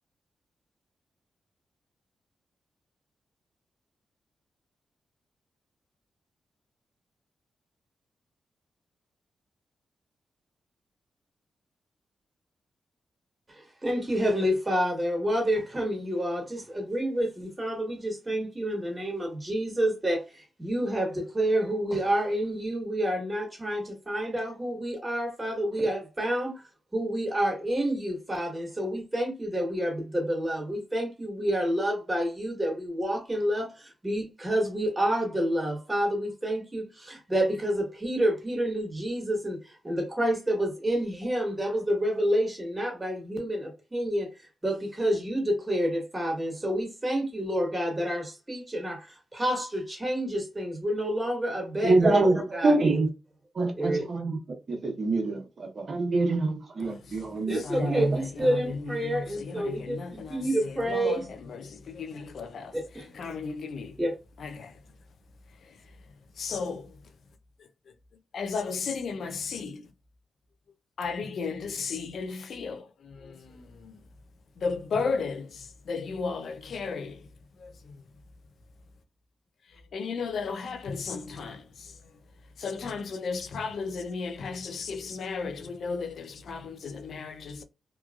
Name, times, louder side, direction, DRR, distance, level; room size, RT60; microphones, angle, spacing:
voice 1, 13.5-26.6 26.9-44.3 44.6-49.1 49.3-52.8 53.8-54.0 57.5-61.2 62.7-63.1 64.0-64.2, equal, 25° right, 1.4 m, -29 dB
voice 2, 51.8-52.4 52.6-53.1 53.6-54.4 54.7-58.1, right 2 dB, 55° right, 0.9 m, -25 dB
voice 3, 56.8-62.8 63.1-64.0 64.4-64.7 66.4-66.9 68.3-69.9 71.0-73.9 74.6-77.2 77.6-77.9 79.9-81.9 82.6-87.6, left 5 dB, 75° left, 0.5 m, -35 dB
3.0 x 2.3 x 2.3 m
cardioid pair, 55°, 0 cm